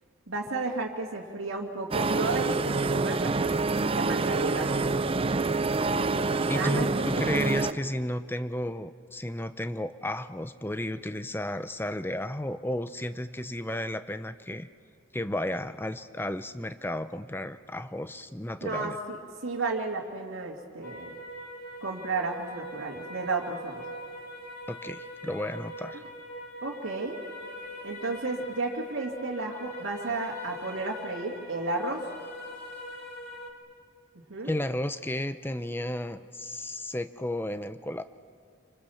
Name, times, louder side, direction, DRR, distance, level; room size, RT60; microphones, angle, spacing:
voice 1, 0.3-4.8 5.9-6.1 6.5-7.8 18.6-19.2 19.4-21.1 21.8-23.8 26.6-27.2 27.8-32.0 34.3-34.5, right 3 dB, 80° right, -4 dB, 2.5 m, -33 dB
sound 1, 1.9-7.7, right 3 dB, 30° right, 0.5 m, -27 dB
voice 2, 6.5-14.7 15.1-19.0 24.7-26.0 34.4-38.0, left 1 dB, 10° left, 11 dB, 0.7 m, -33 dB
sound 2, 20.8-33.5, equal, 50° left, 2.9 m, -42 dB
27.5 x 25.5 x 7.2 m, 2.3 s
head